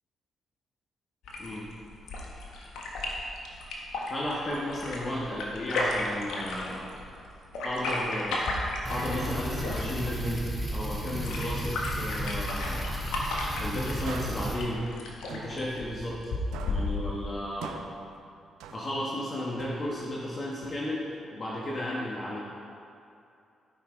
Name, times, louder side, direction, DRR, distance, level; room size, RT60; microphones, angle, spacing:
sound 1, 1.2-17.3, left 2 dB, 75° left, 1.4 m, -35 dB
voice 1, 4.1-6.9 7.6-8.4 8.8-10.4 10.7-12.8 13.6-14.8 15.3-16.3 16.7-17.8 18.7-22.4, left 1 dB, 40° left, -5 dB, 1.6 m, -34 dB
sound 2, 8.9-14.6, right 1 dB, 15° left, 2.1 m, -34 dB
sound 3, 14.0-16.3 16.5-19.2 19.6-21.3, right 6 dB, 80° right, 0.5 m, -45 dB
12.5 x 5.9 x 3.9 m, 2.7 s
hypercardioid pair, 50°, 0 cm